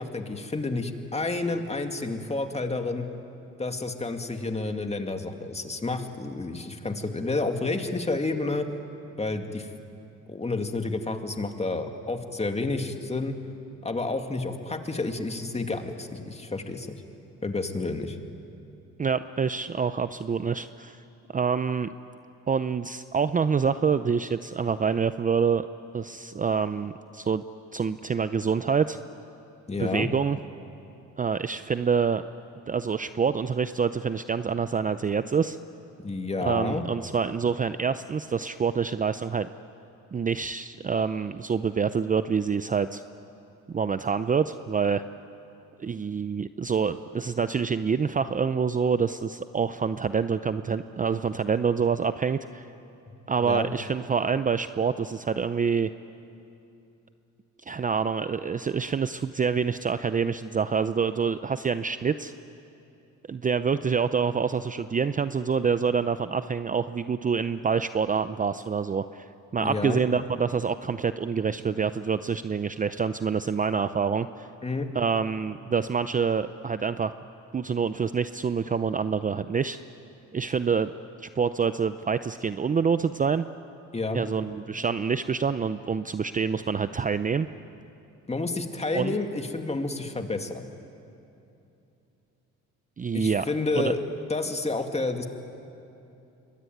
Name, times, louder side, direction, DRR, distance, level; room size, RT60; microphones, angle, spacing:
voice 1, 0.0-3.1 3.6-8.7 9.2-9.7 10.3-13.4 13.8-17.0 17.4-18.2 29.7-30.1 36.0-36.8 53.4-53.7 69.6-70.0 74.6-74.9 83.9-84.2 88.3-90.7 93.1-95.3, left 3 dB, 20° left, 5 dB, 2.3 m, -30 dB
voice 2, 19.0-21.0 21.3-21.9 22.5-25.7 25.9-27.4 27.7-29.0 29.8-30.4 31.2-32.2 32.7-35.6 36.4-39.5 40.1-43.0 43.7-45.0 45.8-52.7 53.3-55.9 57.7-62.3 63.3-69.3 69.5-74.5 74.9-77.1 77.5-79.8 80.3-80.9 81.2-83.4 84.1-87.5 88.9-89.2 93.0-93.5 93.7-93.9, right 6 dB, 25° right, 12 dB, 0.6 m, -26 dB
25.5 x 22.0 x 9.4 m, 2.8 s
cardioid pair, 90°, 30 cm